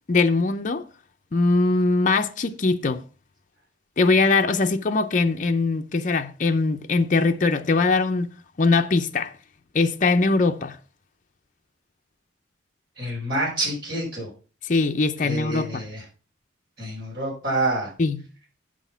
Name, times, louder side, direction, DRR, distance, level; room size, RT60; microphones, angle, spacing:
voice 1, 0.1-0.8 1.3-3.0 4.0-8.3 8.6-9.3 9.7-10.8 14.6-15.9 18.0-18.2, left 3 dB, 40° left, 0.5 m, -21 dB
voice 2, 13.0-14.3 15.2-16.0 16.8-17.9, right 1 dB, 55° right, 5.2 m, -27 dB
8.0 x 6.2 x 5.6 m
head